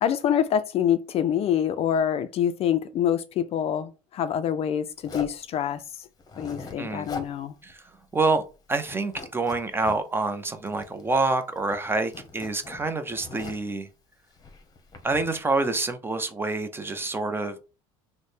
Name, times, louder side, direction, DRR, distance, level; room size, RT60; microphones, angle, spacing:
voice 1, 0.0-6.1 6.4-7.5, left 9 dB, 45° left, 0.4 m, -26 dB
Zipper (clothing), 5.0-5.4 6.2-7.3 7.7-7.8 8.1-8.6 8.8-10.0 10.7-11.3 11.6-13.7 14.3-15.4, left 4 dB, 25° left, 0.9 m, -41 dB
voice 2, 8.1-8.4 8.7-13.9 15.0-17.7, right 3 dB, 15° right, 0.5 m, -27 dB
3.1 x 2.1 x 4.2 m
supercardioid pair, 100°, 15 cm